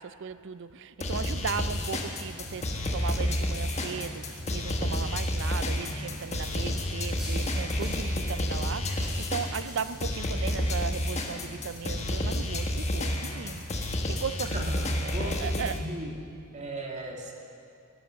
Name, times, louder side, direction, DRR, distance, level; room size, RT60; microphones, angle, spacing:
voice 1, 0.0-13.9 14.2-14.6 15.0-15.8, right 6 dB, 60° right, 0.5 m, -37 dB
sound 1, 1.0-15.8, left 1 dB, 30° left, 1.4 m, -30 dB
sound 2, 1.7-15.3, equal, ahead, 5.5 m, -48 dB
sound 3, 2.5-2.7 3.1-4.1 4.4-4.6 4.9-5.4 5.7-6.6 6.9-7.2 7.6-7.8 8.3-8.5 8.9-10.9, equal, 75° left, 1.9 m, -49 dB
voice 2, 14.5-16.3 16.5-17.3, right 1 dB, 35° right, 2.2 m, -37 dB
16.5 x 14.0 x 6.3 m
head